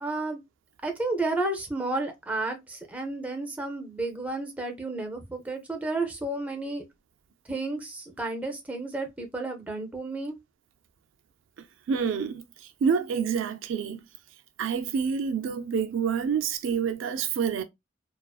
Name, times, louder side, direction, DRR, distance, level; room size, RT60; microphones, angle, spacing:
voice 1, 0.0-0.4 0.8-6.8 7.5-10.3, right 2 dB, 10° right, 0.5 m, -32 dB
voice 2, 11.9-12.4 12.8-14.0 14.6-17.6, right 6 dB, 75° right, 0.3 m, -27 dB
2.4 x 2.3 x 2.3 m
head